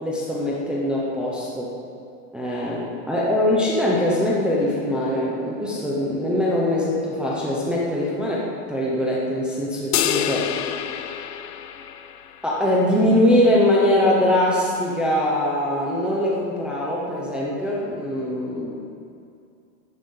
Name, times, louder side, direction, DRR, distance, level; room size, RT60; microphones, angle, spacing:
voice 1, 0.0-1.7 2.3-10.6 12.4-18.8, left 1 dB, ahead, -6 dB, 0.4 m, -22 dB
sound 1, 9.9-12.5, left 10 dB, 70° left, 1.0 m, -27 dB
12.0 x 9.5 x 8.3 m, 2.5 s
supercardioid pair, 155°, 48 cm